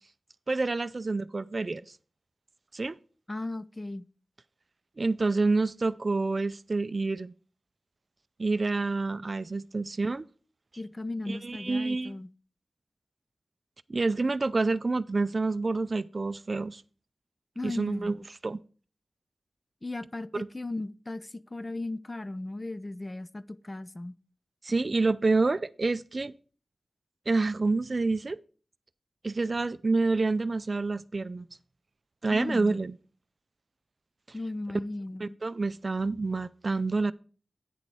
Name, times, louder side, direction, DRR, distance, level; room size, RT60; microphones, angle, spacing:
voice 1, 0.5-1.8 2.7-3.0 5.0-7.3 8.4-10.3 11.3-12.2 13.9-16.8 17.6-18.2 18.4-18.6 20.3-20.5 24.6-26.3 27.3-28.4 29.2-31.5 32.2-32.9 35.2-37.1, right 3 dB, 45° right, 0.4 m, -28 dB
voice 2, 3.3-4.1 10.8-12.3 17.6-18.2 19.8-24.1 32.3-32.8 34.3-35.4, left 2 dB, 25° left, 0.4 m, -36 dB
9.1 x 6.8 x 4.6 m
wide cardioid pair, 75°, 0 cm